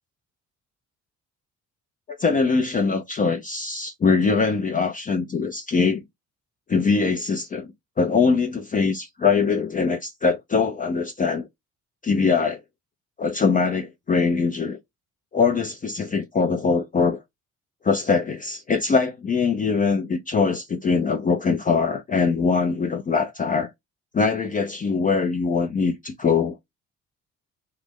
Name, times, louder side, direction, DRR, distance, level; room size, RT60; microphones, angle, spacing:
voice 1, 2.1-6.0 6.7-7.7 8.0-11.5 12.0-12.6 13.2-14.8 15.3-17.2 17.8-23.7 24.1-26.5, left 5 dB, 30° left, 0.4 m, -22 dB
3.2 x 2.1 x 3.6 m
cardioid pair, 90°, 30 cm